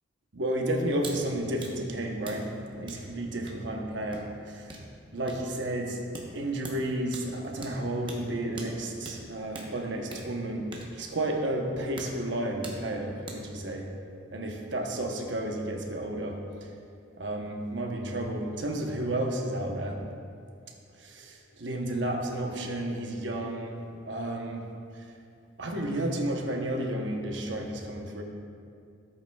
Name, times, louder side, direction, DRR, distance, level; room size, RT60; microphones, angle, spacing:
voice 1, 0.3-4.7 5.1-6.0 6.3-13.9 14.3-16.4 17.2-20.0 21.0-24.7 25.6-28.2, right 1 dB, 60° right, 2 dB, 0.9 m, -32 dB
sound 1, 1.0-1.2 1.5-13.6, right 2 dB, 25° right, 0.9 m, -45 dB
12.5 x 7.9 x 2.3 m, 2.3 s
head